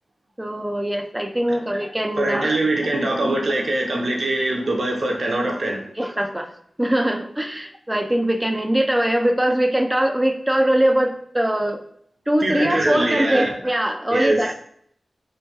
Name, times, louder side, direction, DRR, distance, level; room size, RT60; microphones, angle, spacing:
voice 1, 0.4-2.6 2.9-3.4 6.0-6.5 6.8-11.8 12.3-14.5, right 1 dB, 15° right, 5 dB, 0.3 m, -22 dB
voice 2, 2.2-5.8 12.4-13.5 14.1-14.4, right 2 dB, 70° right, 0 dB, 0.5 m, -23 dB
2.2 x 2.2 x 2.7 m, 0.66 s
cardioid pair, 45°, 0 cm